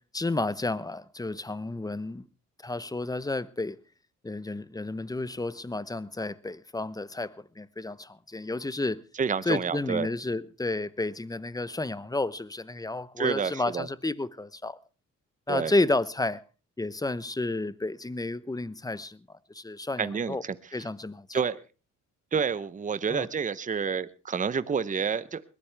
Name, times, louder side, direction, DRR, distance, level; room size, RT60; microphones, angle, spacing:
voice 1, 0.0-2.3 2.6-3.8 4.2-9.0 9.4-14.8 15.5-16.4 16.8-20.4 20.7-21.4 23.1-23.3, left 2 dB, 10° left, 0.8 m, -31 dB
voice 2, 9.2-10.1 13.2-13.9 15.5-15.7 20.0-20.5 21.3-21.6 22.3-25.4, right 6 dB, 25° right, 0.8 m, -29 dB
21.0 x 15.5 x 3.4 m
cardioid pair, 90°, 30 cm